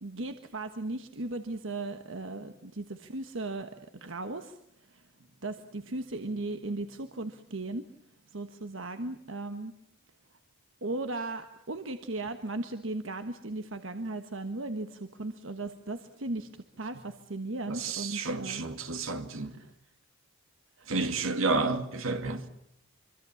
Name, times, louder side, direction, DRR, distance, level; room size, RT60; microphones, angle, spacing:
voice 1, 0.0-4.6 4.9-5.0 5.4-7.8 8.3-9.7 10.8-16.5 16.8-18.6 19.6-19.7 20.8-20.9, right 2 dB, 65° right, 1.3 m, -37 dB
voice 2, 17.7-19.6 20.9-22.5, right 3 dB, 80° right, 2.4 m, -31 dB
25.5 x 25.0 x 7.2 m
head